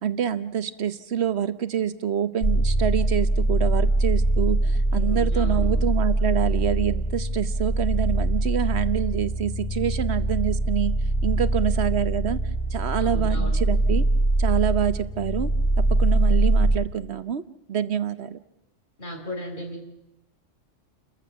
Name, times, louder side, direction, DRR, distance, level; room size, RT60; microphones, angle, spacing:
voice 1, 0.0-10.9 11.2-12.4 12.7-14.0 14.4-15.5 15.8-17.4 17.7-18.4, right 8 dB, 60° right, 13 dB, 1.1 m, -26 dB
sound 1, 2.4-16.8, right 2 dB, 25° left, 2.4 m, -23 dB
voice 2, 4.9-5.7 13.0-13.6 19.0-19.8, equal, 40° left, 2 dB, 4.6 m, -36 dB
29.5 x 14.5 x 7.0 m, 0.91 s
omnidirectional pair, 1.3 m